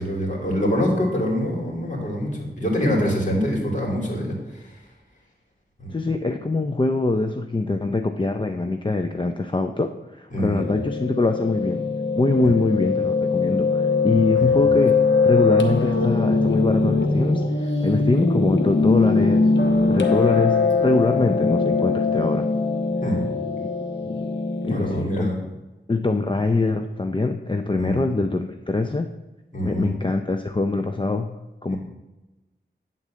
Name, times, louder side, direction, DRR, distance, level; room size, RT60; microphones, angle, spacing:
voice 1, 0.0-4.4 5.8-6.0 10.3-10.6 12.4-12.6 14.4-14.5 23.0-23.3 24.6-25.4 27.8-28.0 29.5-29.9 31.7-31.8, equal, 40° left, -3 dB, 2.7 m, -25 dB
voice 2, 5.9-11.8 12.1-19.5 19.9-22.5 24.0-24.2 24.6-25.3 25.9-29.1 29.6-31.3 31.6-31.8, left 3 dB, 25° left, 6 dB, 0.4 m, -23 dB
Piano, 10.6-25.0, left 4 dB, 75° left, 1.0 m, -21 dB
9.6 x 3.9 x 7.3 m, 1.1 s
wide cardioid pair, 75°, 19 cm